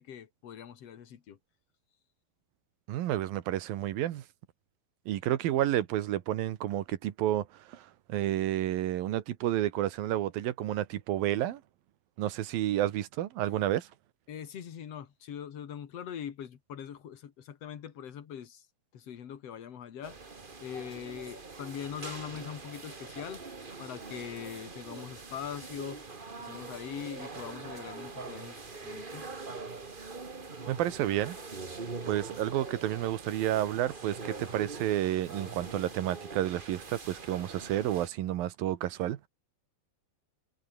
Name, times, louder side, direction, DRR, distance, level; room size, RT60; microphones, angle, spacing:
voice 1, 0.0-1.4 14.3-18.6 18.9-20.2 20.6-23.4 23.8-26.0 26.4-29.3, left 9 dB, 50° left, 2.6 m, -42 dB
voice 2, 2.9-4.2 5.1-11.6 12.2-13.9 30.7-31.4 32.1-39.3, right 13 dB, 85° right, 3.1 m, -30 dB
sound 1, 20.0-38.1, right 4 dB, 50° right, 0.6 m, -43 dB
omnidirectional pair, 4.1 m